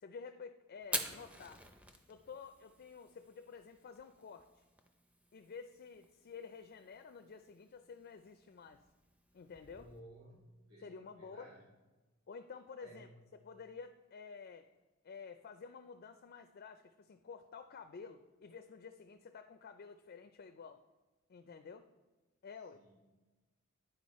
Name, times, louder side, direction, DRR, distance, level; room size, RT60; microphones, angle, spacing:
voice 1, 0.0-1.6 2.1-4.6 5.3-8.9 9.3-9.9 10.8-11.5 12.3-13.1 13.4-14.7 15.0-20.8 21.3-21.9 22.4-22.8, left 5 dB, 45° left, 7 dB, 0.4 m, -51 dB
Fire, 0.8-10.0, equal, 5° right, 0.5 m, -48 dB
voice 2, 9.7-11.7 12.8-13.1 22.7-23.0, equal, 85° right, -5 dB, 1.9 m, -57 dB
10.0 x 5.0 x 4.1 m, 1.2 s
head